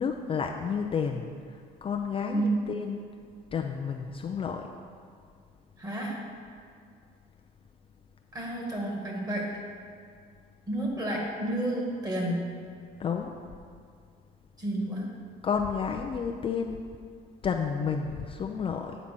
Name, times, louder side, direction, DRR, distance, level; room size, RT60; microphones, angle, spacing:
voice 1, 0.0-3.0 3.5-4.7 13.0-13.3 15.4-16.8 17.4-19.0, left 6 dB, 35° left, 3 dB, 0.4 m, -31 dB
voice 2, 2.3-2.7 5.8-6.3 8.3-9.6 10.7-12.5 14.6-15.1, right 1 dB, 20° right, -2 dB, 1.8 m, -30 dB
8.8 x 4.1 x 6.0 m, 2.2 s
cardioid pair, 110°, 17 cm